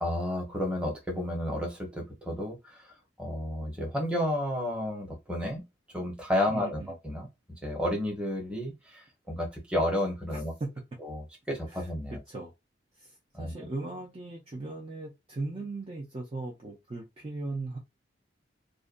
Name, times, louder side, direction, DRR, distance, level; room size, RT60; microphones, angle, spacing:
voice 1, 0.0-2.9 3.2-5.6 5.9-7.3 7.6-10.5 11.0-12.2 13.3-13.5, left 1 dB, 5° right, 0.8 m, -31 dB
voice 2, 6.5-6.9 10.3-10.7 11.7-11.9 12.3-12.5 13.0-17.8, right 2 dB, 30° right, 0.4 m, -38 dB
2.5 x 2.1 x 2.5 m
head